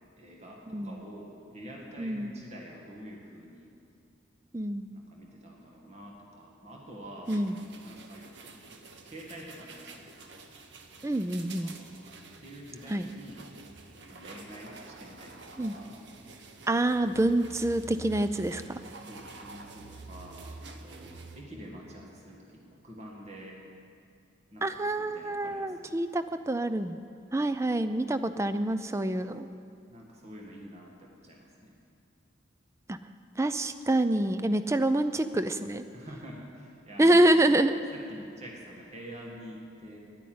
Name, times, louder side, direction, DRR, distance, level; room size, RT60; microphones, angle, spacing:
voice 1, 0.2-3.7 4.9-7.4 7.8-10.5 11.6-13.5 14.1-16.1 19.0-23.6 24.5-26.0 29.9-31.8 35.9-37.6 37.9-40.0, equal, 35° right, -1 dB, 1.8 m, -47 dB
voice 2, 2.0-2.3 4.5-4.9 7.3-7.5 11.0-11.7 12.9-13.1 15.6-15.8 16.7-18.8 24.6-27.0 27.3-29.5 32.9-33.0 33.4-35.8 37.0-37.7, right 1 dB, 15° right, 11 dB, 0.4 m, -26 dB
sound 1, 7.2-21.4, right 3 dB, 65° right, 0.9 m, -48 dB
10.5 x 9.5 x 9.4 m, 2.4 s
head